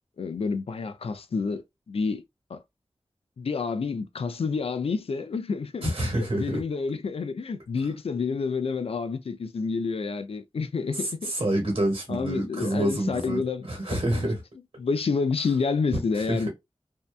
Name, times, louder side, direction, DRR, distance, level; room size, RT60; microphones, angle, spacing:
voice 1, 0.2-2.2 2.5-2.6 3.4-11.3 12.1-13.6 13.9-14.0 14.8-16.5, left 4 dB, 80° left, 0.4 m, -29 dB
voice 2, 5.8-6.6 10.9-14.4 16.1-16.5, right 1 dB, 65° right, 1.2 m, -27 dB
2.7 x 2.2 x 2.4 m
wide cardioid pair, 80°, 10 cm